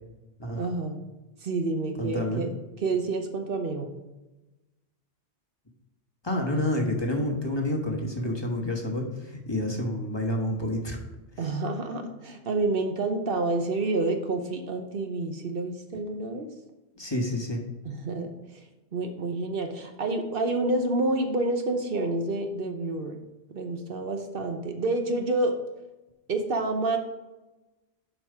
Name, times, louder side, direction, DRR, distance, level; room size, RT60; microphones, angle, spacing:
voice 1, 0.6-1.0 1.4-2.5 2.8-3.9 11.4-16.5 17.8-18.6 18.9-23.2 23.5-25.5 26.3-27.0, right 2 dB, 60° right, 5 dB, 1.0 m, -28 dB
voice 2, 2.0-2.4 6.2-11.0 11.4-11.5 17.0-17.6, left 1 dB, 25° left, 0 dB, 1.3 m, -29 dB
7.2 x 5.5 x 4.8 m, 1.1 s
omnidirectional pair, 1.1 m